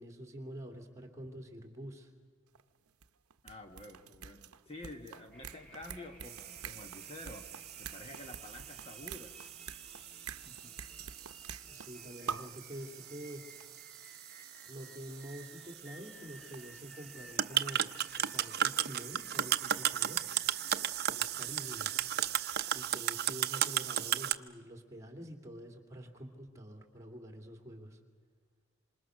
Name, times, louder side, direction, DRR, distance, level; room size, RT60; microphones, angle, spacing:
voice 1, 0.0-2.1 11.7-13.5 14.6-17.9 18.2-20.3 21.0-21.9 22.7-28.0, equal, 15° right, 4 dB, 2.8 m, -47 dB
sound 1, 2.5-2.6 2.9-12.0 12.3-12.6 13.3-13.4 13.6-13.7 15.0-15.1 16.1-17.5 17.8-17.9, right 7 dB, 90° right, 0.8 m, -47 dB
voice 2, 3.4-7.5 7.8-9.4 10.4-10.7, left 1 dB, 25° left, 4 dB, 1.4 m, -49 dB
sound 2, 5.3-22.9, right 1 dB, 5° left, 1.7 m, -57 dB
sound 3, 6.2-24.3, right 10 dB, 50° right, 0.7 m, -36 dB
27.0 x 26.5 x 6.5 m, 1.5 s
head